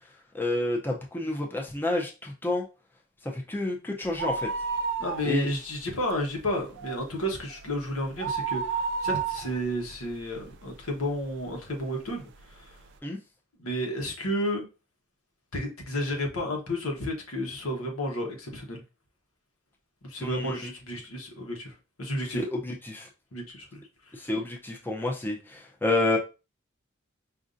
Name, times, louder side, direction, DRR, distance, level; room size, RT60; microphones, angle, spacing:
voice 1, 0.3-2.6 3.3-4.5 5.3-5.5 13.0-13.2 20.2-20.7 22.5-23.1 24.2-26.2, left 2 dB, 10° left, 0.5 m, -29 dB
sound 1, 4.1-5.7 6.0-6.1 6.6-11.0 11.5-11.6 12.4-12.5 12.7-12.8, right 5 dB, 60° right, 0.3 m, -31 dB
voice 2, 5.0-12.8 13.6-14.7 15.5-18.8 20.0-22.4 23.3-23.8 24.1-24.3, equal, 80° left, 1.1 m, -32 dB
5.1 x 2.6 x 2.6 m
head